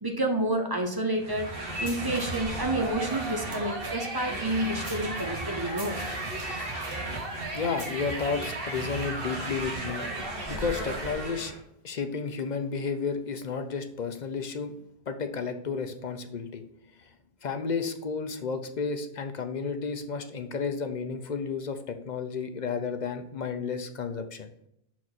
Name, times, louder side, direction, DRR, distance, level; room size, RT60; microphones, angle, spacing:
voice 1, 0.0-6.0, right 1 dB, 25° right, 3 dB, 0.8 m, -29 dB
sound 1, 1.2-11.6, right 2 dB, 65° right, 1.5 m, -34 dB
voice 2, 7.5-10.1 10.5-11.5 11.8-14.8 15.1-16.6 17.4-24.5, left 5 dB, 50° left, 7 dB, 0.7 m, -32 dB
6.2 x 4.5 x 4.1 m, 0.75 s
omnidirectional pair, 1.1 m